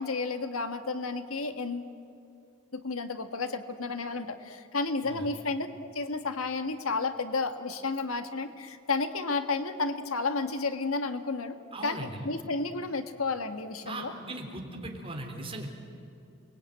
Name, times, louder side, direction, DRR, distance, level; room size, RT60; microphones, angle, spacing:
voice 1, 0.0-1.9 2.7-5.7 5.9-11.6 11.8-14.1, left 3 dB, 80° left, 8 dB, 1.6 m, -32 dB
voice 2, 11.7-12.3 13.8-15.7, right 2 dB, 25° right, 2 dB, 3.7 m, -39 dB
30.0 x 21.0 x 9.2 m, 2.6 s
head